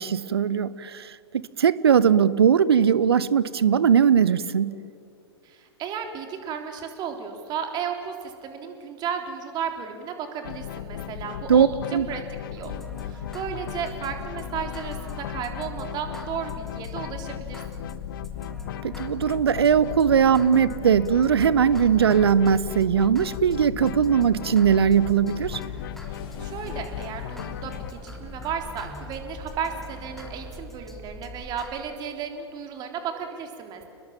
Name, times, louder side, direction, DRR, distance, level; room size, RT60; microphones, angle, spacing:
voice 1, 0.0-4.7 11.5-12.1 18.8-25.6, right 7 dB, 65° right, 18 dB, 0.9 m, -20 dB
voice 2, 5.4-11.7 12.1-12.2 12.5-12.7 13.0-17.6 26.1-33.8, right 7 dB, 30° right, 4 dB, 3.6 m, -34 dB
sound 1, 10.4-27.9, left 12 dB, 50° left, 0.6 m, -36 dB
sound 2, 12.5-31.8, left 1 dB, ahead, 3.2 m, -42 dB
sound 3, 25.4-30.5, left 3 dB, 35° left, 5.6 m, -46 dB
30.0 x 21.0 x 7.3 m, 2.4 s
figure-of-eight pair, 100°, 14 cm